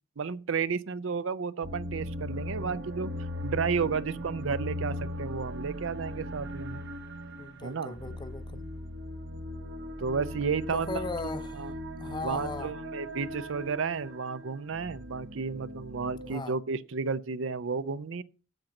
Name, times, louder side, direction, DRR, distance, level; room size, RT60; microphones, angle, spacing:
voice 1, 0.2-3.1 3.4-6.8 7.6-8.1 10.0-11.0 11.6-11.7 12.2-18.2, right 5 dB, 80° right, 0.5 m, -32 dB
sound 1, 1.6-16.3, left 1 dB, 60° right, 1.0 m, -39 dB
voice 2, 7.4-8.6 10.7-12.7 16.2-16.6, left 3 dB, 25° left, 0.6 m, -38 dB
7.9 x 7.2 x 5.9 m
head